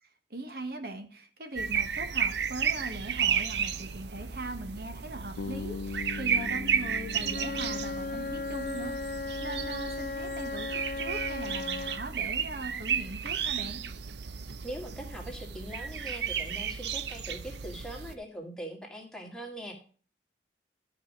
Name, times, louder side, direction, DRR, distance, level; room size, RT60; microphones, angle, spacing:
voice 1, 0.0-9.1 9.4-10.7 11.0-13.8, right 2 dB, 55° right, 5 dB, 1.2 m, -40 dB
sound 1, 1.6-18.1, right 7 dB, 75° right, 0.7 m, -33 dB
Bass guitar, 5.4-9.5, left 4 dB, 85° left, 0.4 m, -41 dB
Wind instrument woodwind instrument, 7.2-12.0, left 3 dB, 45° left, 0.9 m, -36 dB
voice 2, 14.6-19.7, right 1 dB, 5° left, 0 dB, 1.9 m, -41 dB
12.5 x 5.0 x 5.2 m, 0.41 s
head